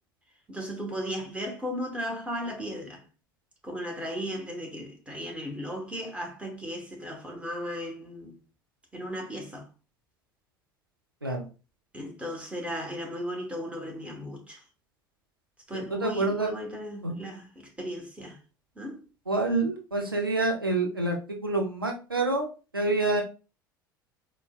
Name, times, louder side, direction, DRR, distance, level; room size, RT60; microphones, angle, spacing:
voice 1, 0.5-3.0 3.6-8.4 8.9-9.7 11.9-14.6 15.7-18.4 18.8-19.0, equal, 10° right, 1.0 m, -36 dB
voice 2, 15.7-16.5 17.0-17.1 19.3-22.5 22.7-23.2, right 2 dB, 90° right, 0.5 m, -27 dB
4.2 x 2.1 x 2.3 m
figure-of-eight pair, 65°, 11 cm